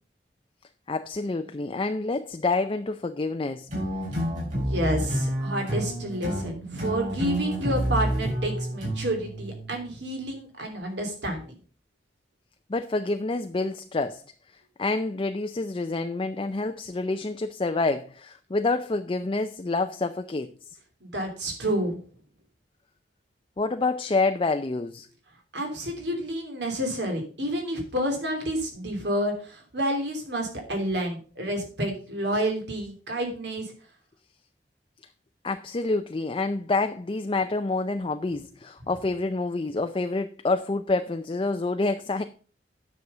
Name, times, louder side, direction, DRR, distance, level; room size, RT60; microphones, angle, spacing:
voice 1, 0.9-3.7 12.7-14.2 14.8-20.5 23.6-25.1 35.4-42.2, left 3 dB, 30° left, 7 dB, 0.5 m, -27 dB
sound 1, 3.7-10.1, right 1 dB, 45° right, 6.0 m, -29 dB
voice 2, 4.6-11.6 21.0-22.0 25.5-33.7, equal, 75° right, 3 dB, 3.0 m, -29 dB
9.6 x 6.4 x 5.4 m, 0.41 s
head